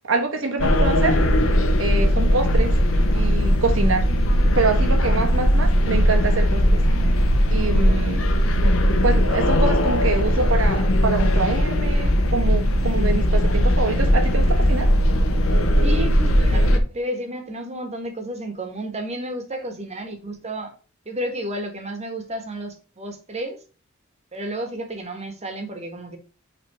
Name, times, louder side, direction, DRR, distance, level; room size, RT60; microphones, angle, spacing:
voice 1, 0.1-1.2 1.8-2.7 3.1-4.0 4.4-6.8 7.5-8.2 9.0-14.9, right 3 dB, 70° right, 1.3 m, -25 dB
sound 1, 0.6-16.8, equal, 85° left, 1.1 m, -19 dB
voice 2, 15.8-20.7 21.0-23.6 24.3-26.2, right 1 dB, 35° right, 1.5 m, -31 dB
6.0 x 3.7 x 4.8 m
head